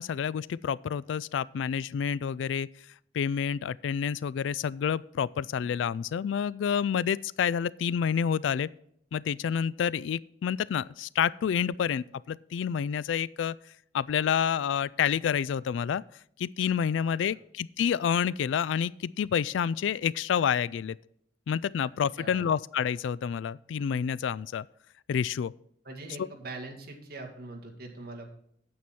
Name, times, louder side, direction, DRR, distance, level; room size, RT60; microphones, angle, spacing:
voice 1, 0.0-2.7 3.1-8.7 9.1-13.5 13.9-16.0 16.4-21.0 21.5-24.7 25.1-25.5 26.2-26.3, left 7 dB, 80° left, 0.3 m, -28 dB
voice 2, 25.8-28.3, right 2 dB, 50° right, 2.1 m, -42 dB
9.4 x 7.8 x 4.2 m
head